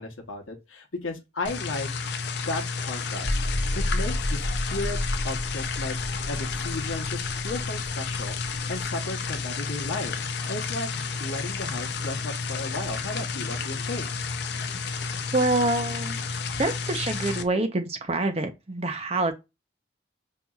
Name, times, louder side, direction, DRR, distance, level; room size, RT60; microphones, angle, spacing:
voice 1, 0.0-1.9 2.4-3.4 3.7-5.0 5.2-10.2 10.5-10.9 11.2-14.1, left 2 dB, 85° left, 1.0 m, -35 dB
sound 1, 1.4-17.4, left 4 dB, 55° left, 0.4 m, -31 dB
sound 2, 3.2-9.6, left 1 dB, 35° left, 1.3 m, -31 dB
voice 2, 15.3-16.2 16.6-19.3, right 2 dB, 30° right, 0.6 m, -26 dB
5.4 x 2.8 x 2.4 m
head